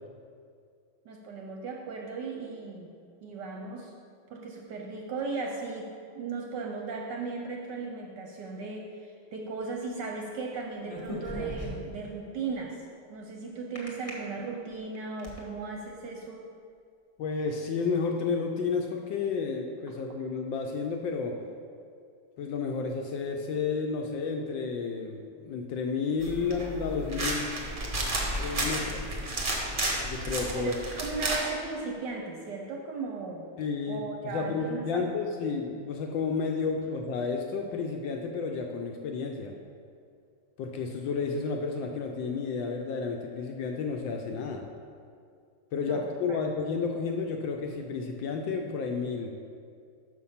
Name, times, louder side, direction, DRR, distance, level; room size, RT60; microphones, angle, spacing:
voice 1, 1.0-2.9 3.2-3.9 4.3-16.5 30.5-33.5 33.9-35.2 45.9-46.0 46.3-46.4, right 4 dB, 70° right, 1 dB, 1.1 m, -37 dB
sound 1, 10.8-12.0 13.8-14.1 14.7-15.4, equal, 25° left, 0.7 m, -37 dB
voice 2, 17.2-21.4 22.4-27.5 28.4-29.1 30.1-30.7 33.6-39.5 40.6-44.6 45.7-49.3, left 5 dB, 75° left, 2 dB, 1.2 m, -31 dB
sound 2, 26.2-31.4, right 1 dB, 45° right, 0.7 m, -32 dB
6.4 x 5.6 x 5.6 m, 2.3 s
omnidirectional pair, 2.4 m